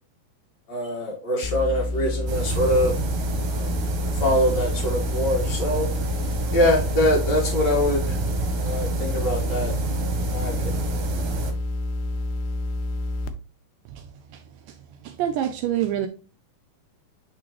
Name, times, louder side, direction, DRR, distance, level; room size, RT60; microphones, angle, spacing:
voice 1, 0.7-2.9 3.4-3.7 4.1-5.9 6.5-8.2 8.6-9.7 10.2-10.9, left 1 dB, 50° left, 1.4 m, -24 dB
sound 1, 1.4-13.3, left 1 dB, 75° left, 1.8 m, -28 dB
sound 2, 2.3-11.5, right 4 dB, 65° right, 2.3 m, -30 dB
voice 2, 15.0-16.1, right 11 dB, 80° right, 2.1 m, -26 dB
8.7 x 3.9 x 3.0 m
omnidirectional pair, 4.1 m